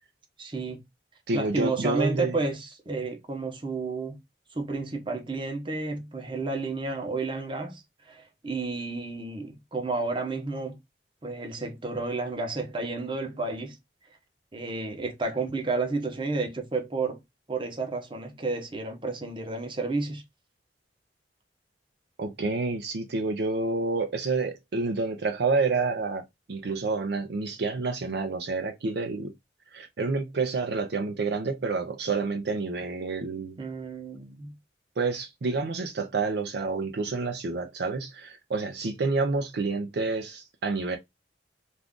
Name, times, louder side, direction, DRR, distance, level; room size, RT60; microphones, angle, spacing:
voice 1, 0.4-0.8 1.3-4.2 4.5-7.8 8.1-10.8 11.2-13.8 14.5-17.2 17.5-20.2 33.6-34.5, right 3 dB, 30° right, 0.8 m, -31 dB
voice 2, 1.3-2.4 22.2-29.3 29.7-33.6 35.0-41.0, right 3 dB, 65° right, 0.5 m, -29 dB
2.5 x 2.4 x 3.5 m
head